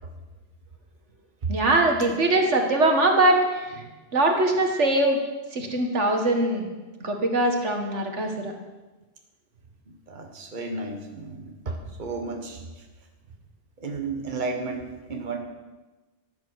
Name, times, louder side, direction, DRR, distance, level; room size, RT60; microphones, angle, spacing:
voice 1, 1.5-3.9 4.1-5.2 5.5-6.7 7.0-8.6, right 2 dB, 75° right, 3 dB, 2.0 m, -22 dB
voice 2, 9.9-12.6 13.8-15.4, right 3 dB, 40° right, 2 dB, 1.6 m, -33 dB
14.5 x 10.0 x 6.4 m, 1.2 s
omnidirectional pair, 1.2 m